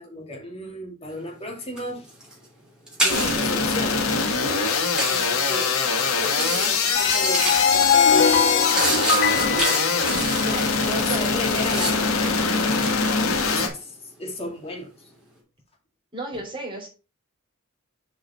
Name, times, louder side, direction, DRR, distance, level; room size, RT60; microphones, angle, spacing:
voice 1, 0.0-2.1 3.0-4.0 5.1-5.8 6.1-8.8 9.5-10.2 10.9-13.0 13.5-15.1 16.3-16.4, left 1 dB, 30° left, 0 dB, 2.6 m, -34 dB
sound 1, 1.2-1.5 1.8-3.5 4.1-4.4 5.0-5.3 5.9-6.0 6.3-7.9 8.3-12.2 12.6-13.1, right 1 dB, 5° right, 3.1 m, -29 dB
sound 2, 3.1-13.7, left 4 dB, 80° left, 1.5 m, -23 dB
sound 3, 6.9-10.9, left 6 dB, 55° left, 0.6 m, -22 dB
voice 2, 10.4-11.3 16.1-16.9, right 2 dB, 25° right, -1 dB, 3.2 m, -33 dB
7.4 x 5.0 x 4.4 m, 0.32 s
head